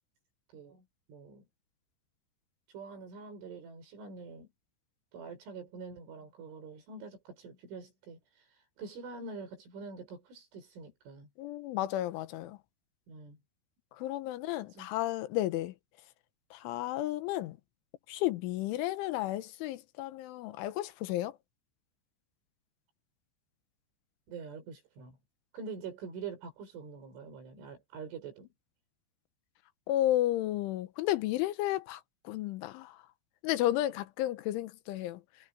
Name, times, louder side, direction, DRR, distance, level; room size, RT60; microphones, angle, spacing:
voice 1, 0.5-1.5 2.7-4.5 5.1-11.3 13.1-13.4 14.7-14.9 24.3-25.2 25.5-28.5, right 5 dB, 80° right, 8.7 m, -45 dB
voice 2, 11.4-12.6 13.9-15.8 16.5-17.6 18.1-21.4 29.9-33.0 33.4-35.2, left 14 dB, 85° left, 3.5 m, -32 dB
omnidirectional pair, 5.5 m